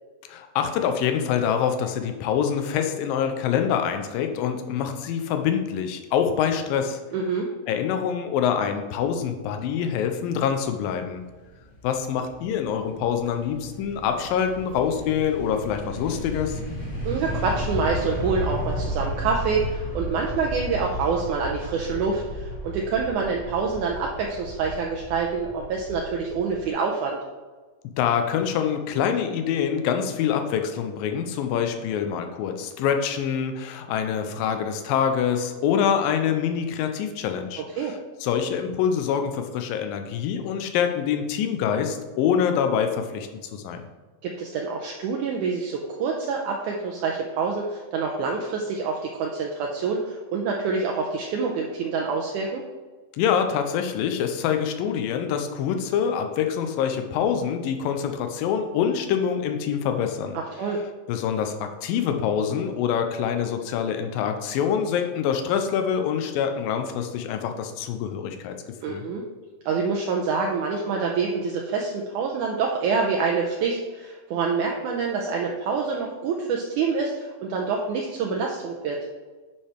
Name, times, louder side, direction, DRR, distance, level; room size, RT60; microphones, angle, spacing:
voice 1, 0.3-7.0 7.7-11.2 11.8-16.6 28.0-37.9 38.2-43.9 53.2-60.7 61.1-68.6 68.9-69.0, left 8 dB, 85° left, 6 dB, 2.4 m, -25 dB
voice 2, 7.1-7.5 17.0-27.2 37.6-37.9 44.2-52.6 60.3-60.8 68.8-69.2 69.7-79.0, right 5 dB, 75° right, 0 dB, 1.9 m, -26 dB
sound 1, 11.2-26.7, equal, 25° left, 2.6 m, -34 dB
9.8 x 5.5 x 3.4 m, 1.3 s
omnidirectional pair, 4.1 m